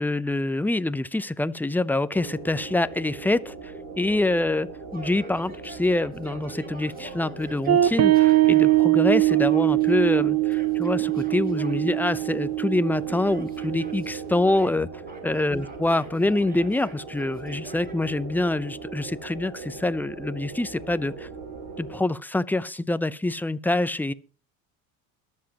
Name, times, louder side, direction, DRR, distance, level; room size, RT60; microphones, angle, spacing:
voice 1, 0.0-14.9 15.2-21.3 21.8-24.1, left 2 dB, 5° left, 0.6 m, -26 dB
sound 1, 2.1-22.0, right 4 dB, 90° right, 5.6 m, -39 dB
Yell, 4.9-8.8 9.2-12.2 13.1-14.8 15.1-18.0, right 1 dB, 25° right, 4.1 m, -47 dB
sound 2, 7.7-14.6, right 16 dB, 45° right, 0.8 m, -22 dB
22.0 x 7.5 x 2.9 m
supercardioid pair, 95°, 37 cm